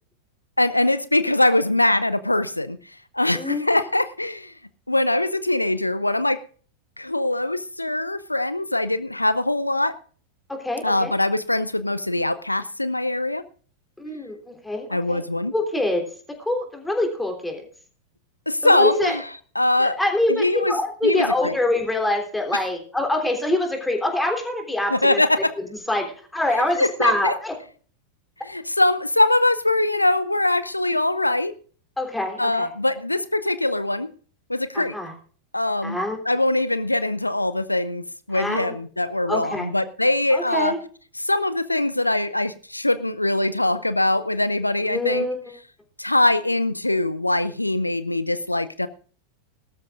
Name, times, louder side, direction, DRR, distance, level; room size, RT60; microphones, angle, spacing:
voice 1, 0.6-4.5 4.9-6.4 7.0-9.9 10.8-13.4 14.9-15.5 18.5-19.3 19.6-19.9 20.3-20.7 21.0-21.5 24.9-25.5 26.8-27.3 28.4-31.5 32.4-34.1 34.5-35.0 35.5-36.0 36.3-40.7 41.2-45.3 46.0-48.9, left 2 dB, 85° left, 15 dB, 0.5 m, -22 dB
voice 2, 3.3-3.6 10.5-11.1 14.0-15.2 15.5-16.0 16.4-17.6 18.6-19.1 19.8-25.2 25.6-26.1 26.3-27.5 32.0-32.7 34.7-35.1 35.8-36.2 38.3-38.7 39.3-39.7 40.3-40.8 44.8-45.4, left 1 dB, 5° left, 3 dB, 3.4 m, -25 dB
20.0 x 12.5 x 2.5 m, 0.42 s
figure-of-eight pair, 90°, 0 cm